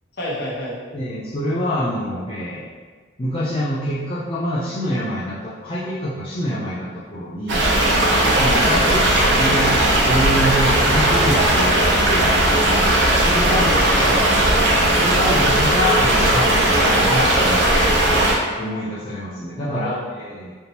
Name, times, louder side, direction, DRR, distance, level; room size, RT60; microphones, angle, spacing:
voice 1, 0.2-0.8 8.7-9.0 13.2-14.2 19.6-20.2, equal, 55° left, -6 dB, 1.1 m, -29 dB
voice 2, 0.9-2.7 3.2-7.7 8.3-9.8 10.0-12.3 13.2-13.7 15.0-17.9 18.6-20.5, equal, 30° left, -8 dB, 0.5 m, -26 dB
sound 1, 7.5-18.3, right 1 dB, 65° right, 0.7 m, -17 dB
4.2 x 3.5 x 2.9 m, 1.5 s
head